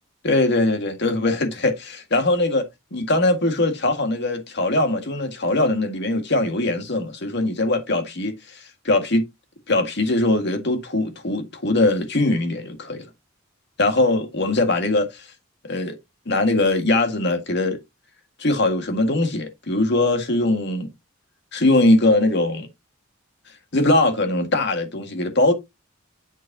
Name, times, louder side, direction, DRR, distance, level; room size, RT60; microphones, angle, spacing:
voice 1, 0.2-9.2 9.7-13.1 13.8-15.3 15.6-16.0 16.3-17.8 18.4-20.9 21.5-22.7 23.7-25.5, left 2 dB, 55° left, 1.8 m, -21 dB
8.0 x 7.3 x 2.8 m
head